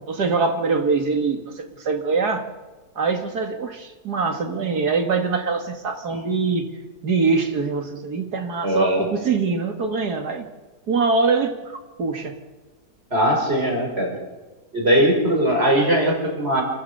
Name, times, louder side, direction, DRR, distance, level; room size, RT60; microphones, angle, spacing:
voice 1, 0.0-2.5 3.0-6.7 7.0-10.5 10.9-12.4, right 4 dB, 70° right, 5 dB, 2.6 m, -23 dB
voice 2, 8.6-9.1 13.1-14.2 14.7-16.6, equal, 35° right, 1 dB, 5.3 m, -20 dB
28.5 x 14.0 x 6.8 m, 1.2 s
omnidirectional pair, 1.8 m